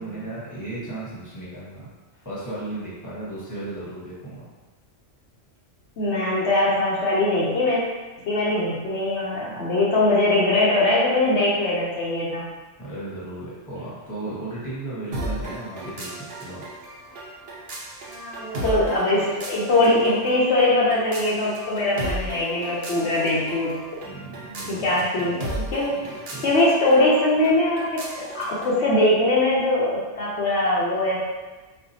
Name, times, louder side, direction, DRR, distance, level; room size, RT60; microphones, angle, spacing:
voice 1, 0.0-4.5 12.8-16.6 24.0-25.3 25.9-26.5, right 2 dB, 15° left, -9 dB, 1.2 m, -35 dB
voice 2, 6.0-7.8 8.2-12.5 18.1-23.7 24.7-25.9 26.4-31.2, left 2 dB, 70° left, -7 dB, 1.0 m, -21 dB
sound 1, 15.1-28.8, right 1 dB, 60° right, 0.9 m, -35 dB
4.2 x 2.4 x 2.7 m, 1.2 s
omnidirectional pair, 1.2 m